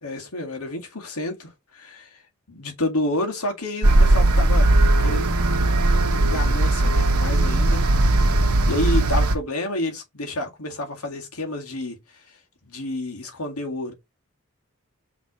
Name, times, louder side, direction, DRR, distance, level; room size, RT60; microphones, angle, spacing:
voice 1, 0.0-2.2 2.5-4.7 5.0-5.2 6.1-8.3 8.7-12.0 12.6-13.9, left 1 dB, 80° left, 2.1 m, -29 dB
sound 1, 3.8-9.4, right 2 dB, 85° right, 1.2 m, -18 dB
5.9 x 3.5 x 4.8 m
head